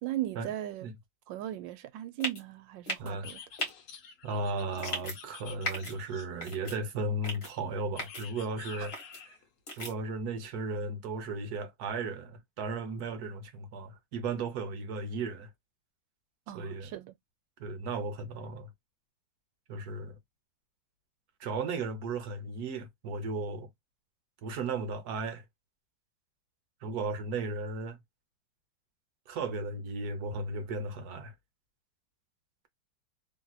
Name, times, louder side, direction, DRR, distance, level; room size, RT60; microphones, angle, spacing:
voice 1, 0.0-0.9 1.3-3.4 8.8-8.9 16.5-17.1, right 14 dB, 85° right, 1.3 m, -37 dB
sound 1, 2.2-2.4 2.9-3.1 3.6-3.7 4.8-5.2 5.6-5.9 6.4-6.8 7.2-7.5 8.0-8.2 8.9-9.2 9.7-9.9, left 1 dB, 40° left, 1.3 m, -36 dB
sound 2, 3.2-6.5 8.0-9.4, left 7 dB, 60° left, 0.9 m, -49 dB
voice 2, 4.2-8.9 9.8-15.5 16.5-16.9 17.6-18.7 19.7-20.2 21.4-23.7 24.4-25.4 26.8-28.0 29.3-31.3, right 3 dB, 60° right, 1.2 m, -35 dB
3.1 x 2.7 x 2.2 m
omnidirectional pair, 2.0 m